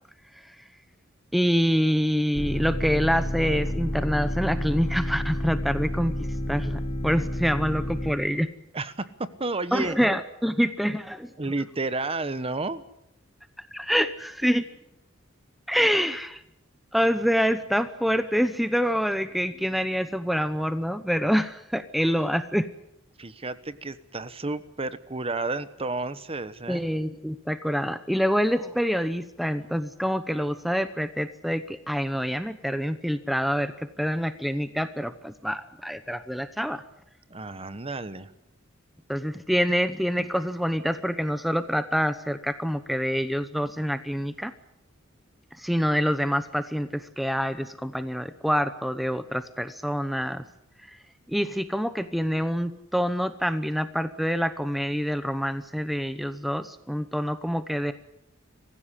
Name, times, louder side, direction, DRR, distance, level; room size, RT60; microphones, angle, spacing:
voice 1, 1.3-8.5 9.7-11.3 13.7-14.7 15.7-16.4 16.9-22.7 26.7-36.8 39.1-44.5 45.6-50.4 50.9-51.0 51.3-57.9, equal, ahead, 11 dB, 0.9 m, -26 dB
sound 1, 2.3-8.1, left 1 dB, 35° left, 2.1 m, -29 dB
voice 2, 8.7-10.1 11.4-12.8 23.2-26.8 37.3-38.3, right 3 dB, 30° right, 13 dB, 1.1 m, -31 dB
25.0 x 15.5 x 10.0 m, 0.83 s
head